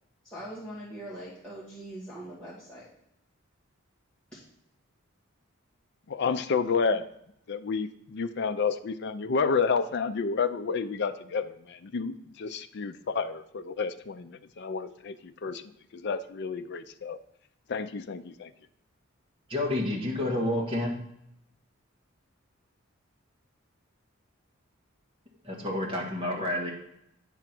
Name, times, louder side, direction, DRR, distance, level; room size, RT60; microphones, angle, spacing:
voice 1, 0.2-2.9 4.3-4.4, right 1 dB, 5° left, -10 dB, 1.7 m, -42 dB
voice 2, 6.1-7.1 7.5-15.1 15.4-15.6 15.9-17.2 17.7-18.5, left 5 dB, 55° left, 10 dB, 0.5 m, -30 dB
voice 3, 19.5-21.0 25.4-26.7, left 1 dB, 25° right, -2 dB, 1.9 m, -29 dB
9.0 x 3.6 x 6.0 m, 0.78 s
head